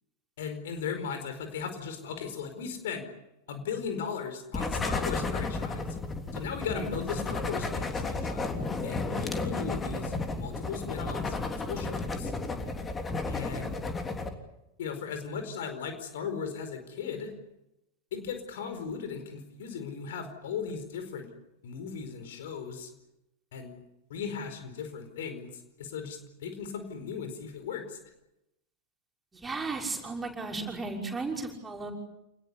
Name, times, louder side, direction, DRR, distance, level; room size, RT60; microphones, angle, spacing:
voice 1, 0.4-3.0 3.5-5.9 6.3-8.5 8.8-12.3 13.3-13.8 14.8-17.3 18.1-21.3 21.6-22.9 23.5-23.8 24.1-28.0, left 6 dB, 55° left, 8 dB, 4.7 m, -37 dB
sound 1, 4.5-14.3, left 3 dB, 15° left, 3.4 m, -33 dB
voice 2, 29.3-31.9, right 3 dB, 15° right, 1 dB, 5.9 m, -35 dB
28.5 x 20.5 x 8.5 m, 0.87 s
figure-of-eight pair, 90°, 0 cm